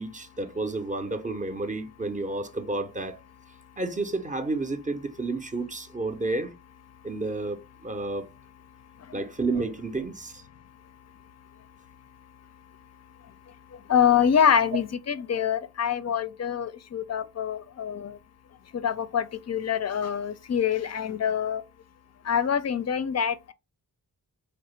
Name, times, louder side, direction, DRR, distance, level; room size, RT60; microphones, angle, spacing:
voice 1, 0.0-3.2 3.8-6.5 7.0-8.3 9.1-10.4, right 2 dB, 20° right, 0.5 m, -31 dB
voice 2, 13.9-18.1 18.7-21.6 22.3-23.5, left 8 dB, 40° left, 0.4 m, -25 dB
3.2 x 2.1 x 3.0 m
cardioid pair, 40°, 40 cm